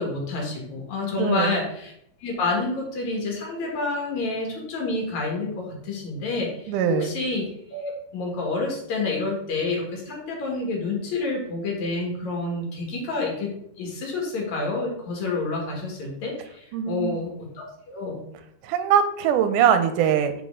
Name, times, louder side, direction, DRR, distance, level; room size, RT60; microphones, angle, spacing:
voice 1, 0.0-1.9 2.2-7.4 7.7-18.2, left 3 dB, 65° left, 0 dB, 2.8 m, -29 dB
voice 2, 1.1-1.5 6.7-7.1 16.7-17.2 18.6-20.3, right 8 dB, 85° right, 9 dB, 2.2 m, -22 dB
8.5 x 4.1 x 3.7 m, 0.73 s
omnidirectional pair, 3.7 m